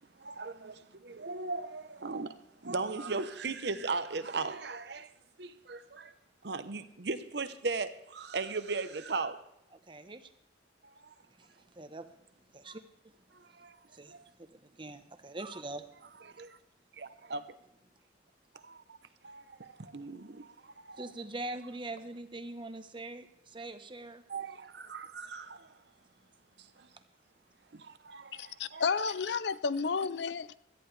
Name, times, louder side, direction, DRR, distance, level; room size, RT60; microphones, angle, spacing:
voice 1, 0.2-5.1 5.4-6.1 6.4-9.4 10.8-11.1 13.3-13.8 14.1-14.2 16.3-16.6 17.0-17.6 18.5-19.0 19.2-21.0 24.3-25.8 26.6-26.9 27.7-29.1, right 4 dB, 60° right, 0.9 m, -38 dB
voice 2, 9.7-10.3 11.4-12.1 12.5-13.1 13.4-13.6 13.9-15.9 21.0-24.2, right 2 dB, 25° right, 1.0 m, -43 dB
voice 3, 28.4-30.6, left 5 dB, 65° left, 0.5 m, -32 dB
17.0 x 13.5 x 3.3 m
head